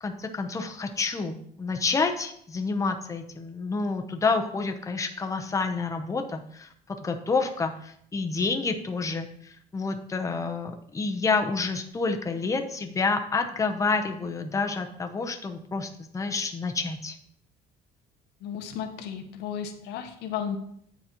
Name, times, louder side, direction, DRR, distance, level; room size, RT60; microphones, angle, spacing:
voice 1, 0.0-17.2, left 4 dB, 20° left, 5 dB, 0.7 m, -29 dB
voice 2, 18.4-20.6, left 8 dB, 85° left, 7 dB, 0.7 m, -34 dB
9.1 x 4.0 x 2.9 m, 0.67 s
cardioid pair, 110°, 17 cm